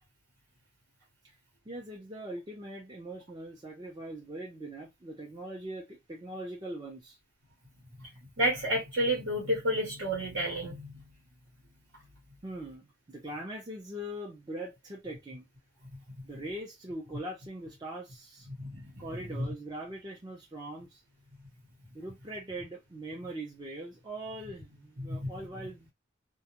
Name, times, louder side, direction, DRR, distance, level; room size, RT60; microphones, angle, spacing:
voice 1, 1.7-7.2 12.4-15.5 16.2-18.5 19.0-21.0 21.9-25.9, right 1 dB, 20° right, 0.6 m, -41 dB
voice 2, 8.4-10.9 18.6-18.9 25.1-25.3, equal, 75° right, 1.1 m, -30 dB
2.3 x 2.1 x 2.9 m
head